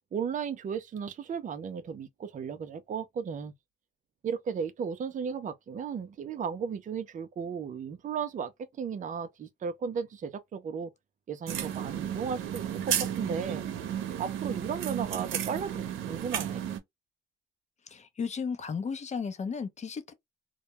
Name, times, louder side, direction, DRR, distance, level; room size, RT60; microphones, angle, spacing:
voice 1, 0.1-3.5 4.2-10.9 11.3-13.6 14.2-16.6, right 6 dB, 40° right, 0.5 m, -35 dB
sound 1, 11.5-16.8, right 10 dB, 85° right, 0.6 m, -33 dB
voice 2, 17.9-20.1, left 5 dB, 35° left, 0.6 m, -34 dB
2.2 x 2.1 x 2.8 m
cardioid pair, 90°, 20 cm